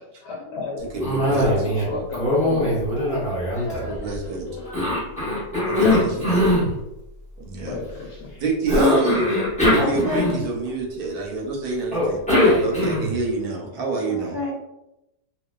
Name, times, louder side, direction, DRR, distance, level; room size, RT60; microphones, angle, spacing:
voice 1, 0.2-0.8 1.4-4.9 5.8-6.4 7.7-8.4, left 3 dB, 80° left, -3 dB, 1.2 m, -33 dB
voice 2, 0.9-1.5 3.8-4.6 5.6-6.5 7.4-7.8 8.4-9.3 9.7-12.2 12.6-14.4, right 3 dB, 70° right, 0 dB, 1.1 m, -27 dB
Cough, 1.0-1.9 2.1-4.2 4.7-6.7 8.7-10.7 11.9-13.2, left 1 dB, 5° left, 0.5 m, -21 dB
voice 3, 9.7-10.4 12.4-12.6 14.0-14.5, left 2 dB, 45° right, -8 dB, 0.7 m, -27 dB
2.9 x 2.4 x 2.2 m, 0.90 s
omnidirectional pair, 1.8 m